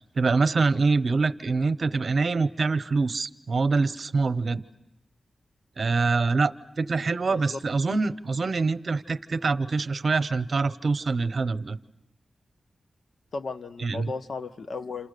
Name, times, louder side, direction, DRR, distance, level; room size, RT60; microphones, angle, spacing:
voice 1, 0.0-4.6 5.8-11.8 13.8-14.1, right 4 dB, 55° right, 13 dB, 0.9 m, -25 dB
voice 2, 7.3-7.6 13.3-15.1, left 4 dB, 70° left, 9 dB, 1.1 m, -35 dB
28.5 x 28.5 x 6.7 m, 0.91 s
wide cardioid pair, 105°, 0 cm